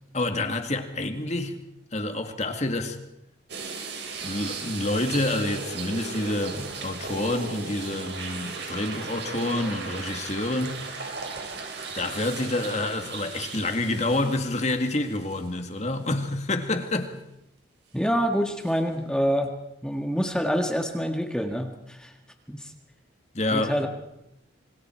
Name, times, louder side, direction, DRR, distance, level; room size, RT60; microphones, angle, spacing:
voice 1, 0.1-1.6 1.9-3.0 4.2-10.9 11.9-17.1 23.3-23.8, left 2 dB, 35° left, 2.1 m, -28 dB
sound 1, 3.5-15.7 16.1-16.3 18.6-18.7, right 4 dB, 65° right, 5.3 m, -36 dB
voice 2, 17.9-19.5 19.8-22.1 22.5-22.7 23.5-23.9, equal, 5° left, 1.7 m, -26 dB
27.0 x 24.0 x 4.6 m
head